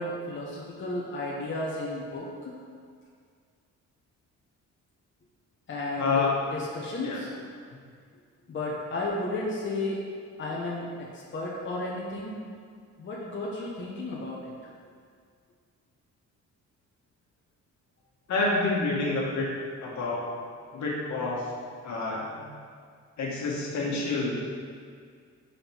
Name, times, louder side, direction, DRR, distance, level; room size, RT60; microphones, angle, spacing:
voice 1, 0.0-2.5 5.7-7.3 8.5-10.0 10.4-12.4 13.0-14.4, left 2 dB, 40° left, -4 dB, 1.1 m, -33 dB
voice 2, 6.0-6.3 7.0-7.2 18.3-19.5 19.8-20.3 20.7-21.4 21.8-22.4 23.2-24.3, left 3 dB, 70° left, -4 dB, 1.6 m, -28 dB
5.7 x 5.2 x 4.5 m, 2.1 s
cardioid pair, 90°, 30 cm